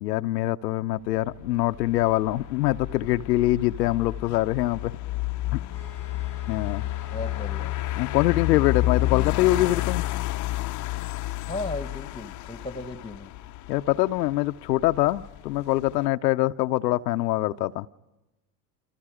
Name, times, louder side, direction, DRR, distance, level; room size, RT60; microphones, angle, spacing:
voice 1, 0.0-4.9 5.5-5.6 6.5-6.8 8.0-10.0 13.7-17.9, left 16 dB, 75° left, 8 dB, 0.7 m, -24 dB
sound 1, 1.2-16.1, left 16 dB, 40° left, 0.7 m, -31 dB
sound 2, 5.7-9.9, right 7 dB, 80° right, 5.7 m, -51 dB
voice 2, 7.1-7.7 11.5-13.3, left 2 dB, 10° left, 12 dB, 1.4 m, -35 dB
29.0 x 26.5 x 4.9 m, 0.98 s
hypercardioid pair, 80°, 49 cm